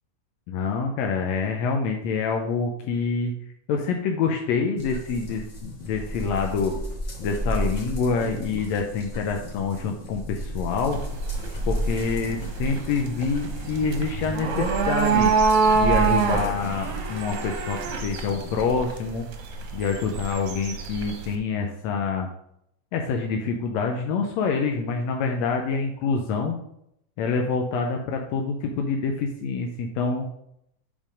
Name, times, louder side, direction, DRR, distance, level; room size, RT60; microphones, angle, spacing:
voice 1, 0.5-3.3 3.7-6.8 7.2-11.0 11.7-15.3 15.7-19.3 19.7-22.3 22.9-26.5 27.2-30.2, left 5 dB, 80° left, 2 dB, 1.7 m, -26 dB
sound 1, 4.8-18.7, equal, 40° left, 1.1 m, -33 dB
sound 2, 10.9-21.4, right 5 dB, 65° right, 1.6 m, -26 dB
5.5 x 5.2 x 5.0 m, 0.77 s
omnidirectional pair, 3.4 m